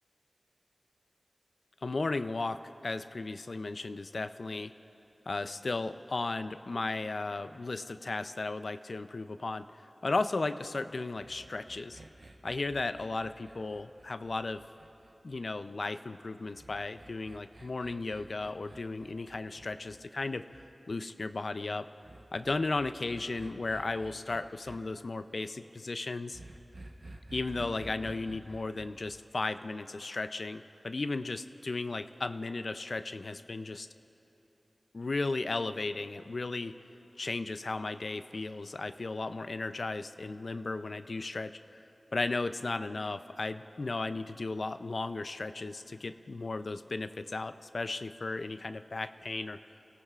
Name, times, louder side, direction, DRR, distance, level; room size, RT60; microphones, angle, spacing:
voice 1, 1.8-4.7 5.3-12.0 12.4-14.6 15.2-20.5 20.9-21.9 22.3-26.4 27.3-33.9 34.9-36.8 37.2-41.8 42.1-49.6, left 3 dB, 75° left, 11 dB, 0.4 m, -35 dB
sound 1, 11.2-15.6 16.5-20.7 22.0-24.8 26.3-29.1, right 2 dB, 75° right, 0.9 m, -51 dB
27.0 x 17.0 x 2.4 m, 2.9 s
wide cardioid pair, 50°, 0 cm